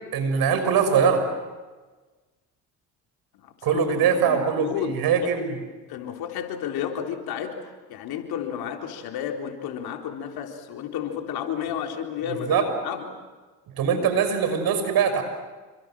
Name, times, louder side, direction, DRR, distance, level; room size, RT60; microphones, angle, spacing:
voice 1, 0.1-1.2 3.6-5.6 12.3-12.7 13.8-15.2, right 6 dB, 65° right, 8 dB, 6.1 m, -22 dB
voice 2, 3.4-3.8 4.3-5.3 5.9-13.1, left 9 dB, 65° left, 3 dB, 4.0 m, -32 dB
28.5 x 25.5 x 7.7 m, 1.3 s
supercardioid pair, 75°, 39 cm